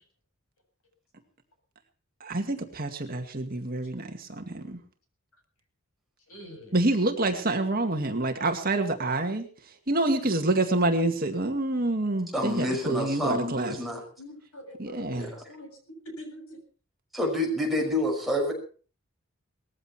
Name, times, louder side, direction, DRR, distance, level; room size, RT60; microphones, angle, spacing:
voice 1, 2.2-4.8 6.7-9.5 9.9-13.8 14.8-15.3, right 2 dB, 40° right, 5 dB, 2.1 m, -27 dB
voice 2, 6.3-7.1 14.2-16.6, equal, 80° left, 4 dB, 7.7 m, -45 dB
voice 3, 12.3-14.0 15.1-15.3 17.1-18.5, left 1 dB, ahead, -1 dB, 5.9 m, -28 dB
19.5 x 15.0 x 4.5 m, 0.40 s
head